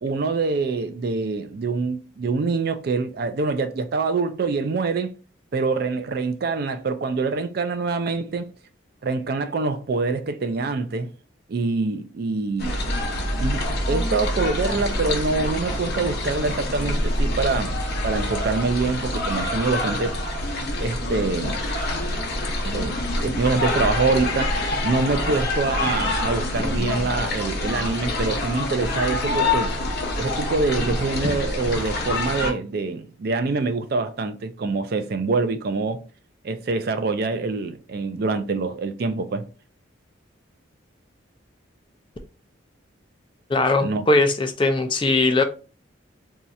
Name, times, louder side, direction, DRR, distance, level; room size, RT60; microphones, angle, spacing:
voice 1, 0.0-5.1 5.5-8.5 9.0-11.1 11.5-12.8 13.4-20.2 20.8-21.6 22.6-24.5 24.8-29.7 30.2-36.0 36.4-39.5 43.8-44.0, right 3 dB, 50° right, 0.4 m, -25 dB
sound 1, 12.6-32.5, left 1 dB, 55° left, 0.8 m, -26 dB
voice 2, 43.5-45.4, left 2 dB, 25° left, 0.4 m, -20 dB
2.7 x 2.4 x 4.1 m
head